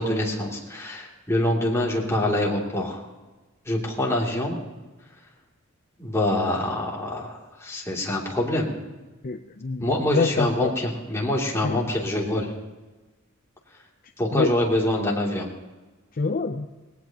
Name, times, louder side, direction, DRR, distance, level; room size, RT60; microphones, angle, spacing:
voice 1, 0.0-3.0 3.7-4.6 6.0-8.7 9.8-12.5 14.2-15.5, left 1 dB, 15° left, -3 dB, 2.8 m, -25 dB
voice 2, 9.2-10.8 11.6-11.8 14.3-14.6 16.1-16.7, left 3 dB, 45° left, 6 dB, 0.6 m, -26 dB
19.5 x 18.0 x 2.9 m, 1.2 s
head